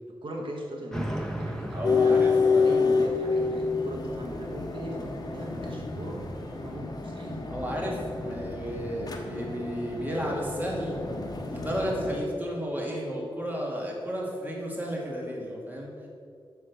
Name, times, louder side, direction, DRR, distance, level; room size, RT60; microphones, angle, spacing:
voice 1, 0.2-2.2 2.6-6.3 6.6-7.5, right 1 dB, 70° right, 0 dB, 1.3 m, -38 dB
sound 1, 0.9-6.7, right 1 dB, 5° left, 1.4 m, -39 dB
voice 2, 1.7-2.8 7.5-11.0 11.5-15.9, equal, 20° right, -2 dB, 2.4 m, -32 dB
sound 2, 1.8-12.2, left 4 dB, 45° left, 1.3 m, -28 dB
9.5 x 6.2 x 6.9 m, 2.4 s
wide cardioid pair, 115°, 9 cm